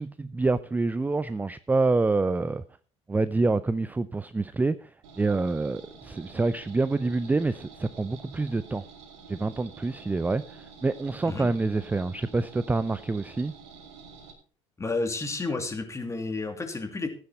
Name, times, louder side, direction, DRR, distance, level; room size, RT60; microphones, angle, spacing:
voice 1, 0.0-2.6 3.1-4.9 5.2-8.8 9.3-13.5, right 3 dB, 10° right, 0.5 m, -27 dB
sound 1, 5.0-14.3, right 5 dB, 70° right, 2.5 m, -49 dB
voice 2, 14.8-17.1, left 3 dB, 20° left, 2.7 m, -31 dB
14.0 x 9.6 x 4.2 m
figure-of-eight pair, 60°, 15 cm